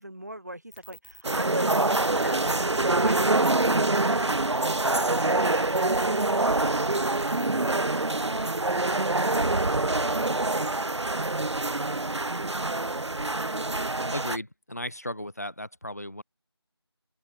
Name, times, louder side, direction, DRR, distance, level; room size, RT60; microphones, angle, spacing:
voice 1, 0.0-11.9, right 1 dB, 40° right, 1.7 m, -43 dB
sound 1, 0.7-7.8, left 1 dB, 25° right, 0.8 m, -50 dB
sound 2, 1.2-14.4, right 2 dB, 90° right, 0.6 m, -25 dB
voice 2, 14.1-16.2, left 1 dB, 35° left, 1.6 m, -35 dB
open air
figure-of-eight pair, 175°, 14 cm